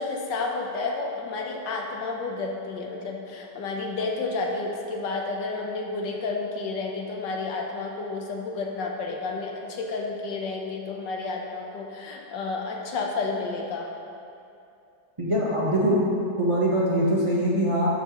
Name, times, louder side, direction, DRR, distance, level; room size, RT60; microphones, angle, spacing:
voice 1, 0.0-13.9, left 3 dB, 90° left, 1 dB, 1.6 m, -31 dB
voice 2, 15.2-16.1 16.4-17.9, equal, 25° right, -6 dB, 0.9 m, -23 dB
12.5 x 6.1 x 3.0 m, 2.6 s
omnidirectional pair, 1.8 m